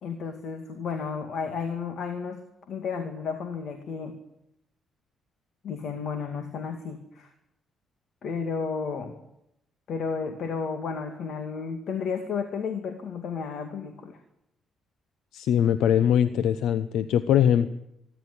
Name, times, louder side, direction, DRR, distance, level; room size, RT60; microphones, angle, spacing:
voice 1, 0.0-4.2 5.6-7.3 8.2-9.1 9.9-14.2, left 5 dB, 65° left, 6 dB, 2.3 m, -32 dB
voice 2, 15.3-17.7, left 9 dB, 85° left, 13 dB, 0.8 m, -22 dB
25.0 x 11.5 x 9.9 m, 0.83 s
cardioid pair, 90°, 0 cm